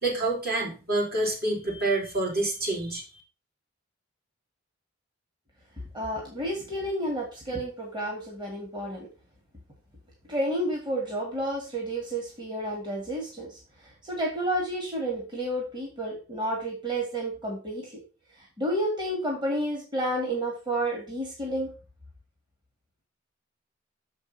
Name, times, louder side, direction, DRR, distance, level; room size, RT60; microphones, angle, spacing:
voice 1, 0.0-3.0, right 2 dB, 50° right, -3 dB, 3.4 m, -27 dB
voice 2, 5.9-9.1 10.3-13.6 14.0-17.9 18.6-21.7, right 1 dB, 25° right, -1 dB, 2.0 m, -30 dB
6.8 x 5.3 x 5.3 m, 0.33 s
head